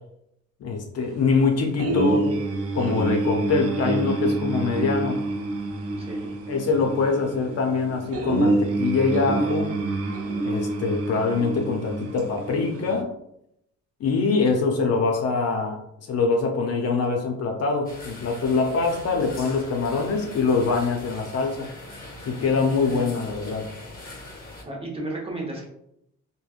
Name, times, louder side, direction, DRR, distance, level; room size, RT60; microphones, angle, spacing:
voice 1, 0.6-2.4 2.7-5.2 6.5-9.7 10.4-13.1 14.0-15.8 16.1-21.7 22.3-23.7, left 4 dB, 55° left, 2 dB, 0.6 m, -24 dB
sound 1, 1.8-13.0, right 2 dB, 50° right, 0.5 m, -27 dB
voice 2, 6.0-6.3 24.7-25.7, right 2 dB, 20° right, -1 dB, 0.8 m, -33 dB
sound 2, 17.9-24.6, left 2 dB, 30° left, 0.9 m, -41 dB
3.3 x 2.1 x 2.4 m, 0.77 s
cardioid pair, 90°, 30 cm